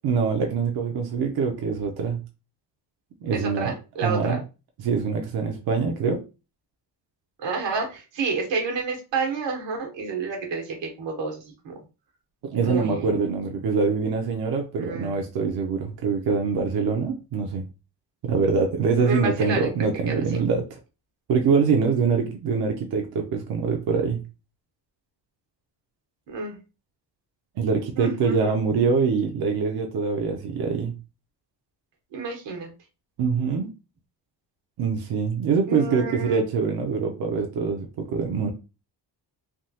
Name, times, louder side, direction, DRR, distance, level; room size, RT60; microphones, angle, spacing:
voice 1, 0.0-2.2 3.2-3.7 4.0-4.4 4.8-6.2 12.5-17.7 18.2-20.6 21.3-24.2 27.6-30.9 33.2-33.7 34.8-38.5, right 5 dB, 60° right, 1 dB, 0.7 m, -24 dB
voice 2, 3.3-4.4 7.4-11.7 12.6-13.1 14.7-15.2 19.0-20.4 26.3-26.6 28.0-28.5 32.1-32.7 35.6-36.4, right 4 dB, 85° right, 1 dB, 1.3 m, -30 dB
3.5 x 2.3 x 2.7 m, 0.30 s
cardioid pair, 130°, 42 cm